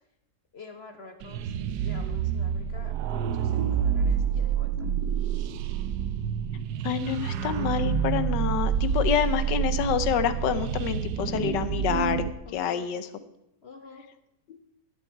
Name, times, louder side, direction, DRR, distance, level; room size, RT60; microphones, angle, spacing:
voice 1, 0.5-1.5 1.8-4.9 12.4-12.9 13.6-14.1, left 4 dB, 45° left, 6 dB, 1.1 m, -47 dB
sound 1, 1.2-12.3, right 8 dB, 75° right, 1.2 m, -28 dB
voice 2, 6.8-12.2 12.5-13.1, left 9 dB, 85° left, 12 dB, 1.5 m, -27 dB
12.0 x 11.0 x 4.5 m, 0.83 s
omnidirectional pair, 1.9 m